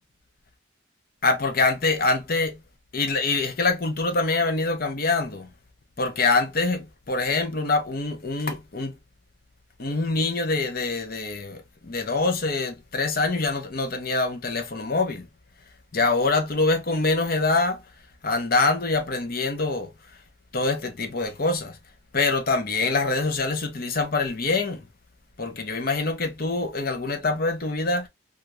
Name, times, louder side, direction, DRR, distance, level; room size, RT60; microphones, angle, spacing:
voice 1, 1.2-2.6 2.9-5.5 6.0-8.9 9.8-15.3 15.9-17.8 18.2-19.9 20.5-21.8 22.1-24.8 25.4-28.1, left 3 dB, 45° left, 0.7 m, -25 dB
2.8 x 2.5 x 3.0 m
head